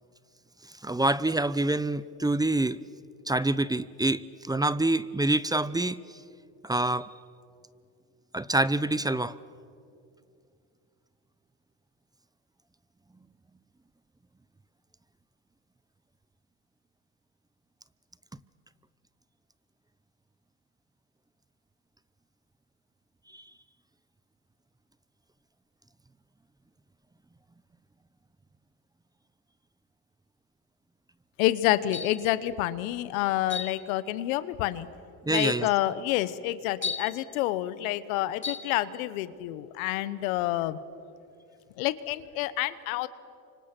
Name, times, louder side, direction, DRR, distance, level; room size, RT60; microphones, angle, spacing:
voice 1, 0.7-2.8 3.3-6.2 6.6-7.1 8.3-9.3 23.3-23.4 35.2-35.7, right 2 dB, 10° right, 17 dB, 0.6 m, -26 dB
voice 2, 31.4-34.9 35.3-40.8 41.8-43.1, left 15 dB, 90° left, 15 dB, 1.1 m, -28 dB
sound 1, 31.9-32.3 33.5-33.8 34.7-34.8 35.3-35.6 36.8-37.2 38.4-38.7, left 5 dB, 30° left, 2.1 m, -34 dB
29.0 x 25.5 x 6.1 m, 2.5 s
supercardioid pair, 85°, 40 cm